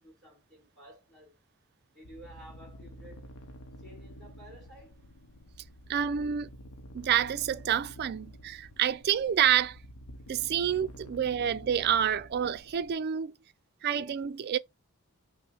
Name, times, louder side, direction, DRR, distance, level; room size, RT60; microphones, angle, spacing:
voice 1, 0.0-1.4 1.9-3.3 3.8-5.0, equal, ahead, 2.9 m, -52 dB
sound 1, 2.0-12.9, equal, 85° left, 0.7 m, -49 dB
voice 2, 5.9-6.5 6.9-9.8 10.3-13.3 13.8-14.6, right 9 dB, 50° right, 0.3 m, -28 dB
5.9 x 2.0 x 3.3 m
head